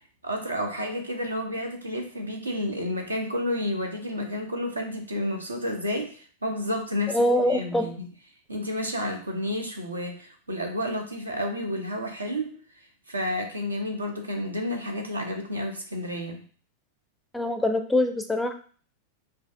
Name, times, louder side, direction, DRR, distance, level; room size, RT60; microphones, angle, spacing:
voice 1, 0.2-8.1 8.5-12.5 13.1-16.4, left 1 dB, 80° right, 4 dB, 0.7 m, -31 dB
voice 2, 7.1-7.9 17.3-18.5, left 1 dB, 5° left, 7 dB, 0.4 m, -24 dB
4.8 x 2.5 x 2.4 m, 0.43 s
figure-of-eight pair, 90°, 0 cm